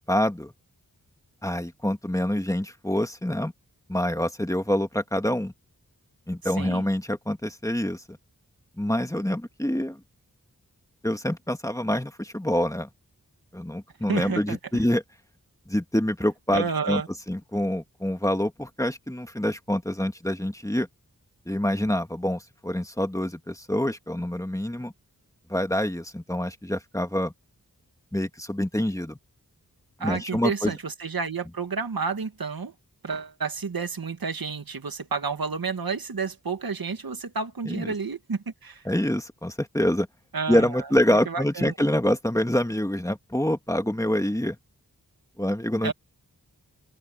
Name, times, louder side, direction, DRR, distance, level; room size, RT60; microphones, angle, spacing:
voice 1, 0.1-0.5 1.4-3.5 3.9-5.5 6.3-8.2 8.8-10.0 11.0-12.9 13.5-15.0 15.7-17.0 17.3-20.9 21.5-24.9 25.5-27.3 28.1-29.2 30.0-30.7 37.7-37.9 38.9-40.1 40.5-44.6 45.4-45.9, left 1 dB, 10° left, 2.0 m, -26 dB
voice 2, 6.4-6.8 14.1-14.6 16.5-17.1 30.0-32.7 33.0-38.8 40.3-40.8 41.1-41.7 45.8-45.9, right 5 dB, 80° right, 2.3 m, -30 dB
wide cardioid pair, 60°, 35 cm